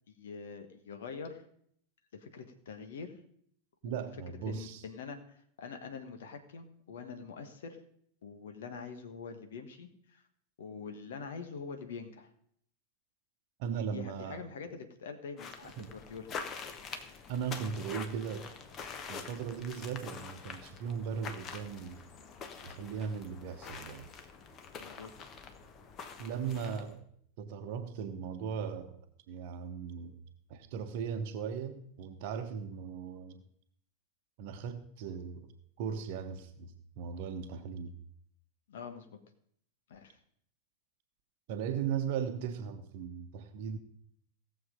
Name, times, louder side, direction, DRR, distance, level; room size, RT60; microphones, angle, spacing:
voice 1, 0.2-1.4 2.1-3.2 3.8-4.0 4.5-7.8 8.2-10.2 10.6-12.3 13.8-16.3 24.7-25.1 38.7-39.2 39.9-40.2, left 5 dB, 60° left, 8 dB, 1.4 m, -45 dB
voice 2, 3.8-4.8 13.6-14.4 15.6-15.9 17.3-18.5 19.1-22.0 22.6-24.1 26.2-27.0 27.4-29.0 29.3-30.2 30.5-33.4 34.4-35.5 35.8-38.0 41.5-43.8, right 7 dB, 50° right, 7 dB, 1.0 m, -38 dB
sound 1, 15.4-27.0, left 5 dB, 30° left, 1.2 m, -46 dB
17.5 x 7.2 x 5.3 m, 0.65 s
figure-of-eight pair, 90°, 0 cm